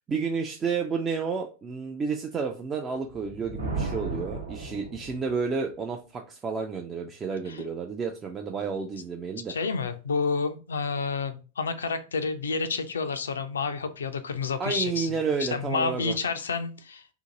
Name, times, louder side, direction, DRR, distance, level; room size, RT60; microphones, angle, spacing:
voice 1, 0.1-9.5 14.6-16.2, right 5 dB, 20° right, 0.4 m, -31 dB
Thunder, 3.1-5.5, right 3 dB, 70° right, 0.9 m, -34 dB
voice 2, 9.5-17.1, left 4 dB, 70° left, 0.4 m, -29 dB
2.8 x 2.5 x 3.7 m
figure-of-eight pair, 90°, 0 cm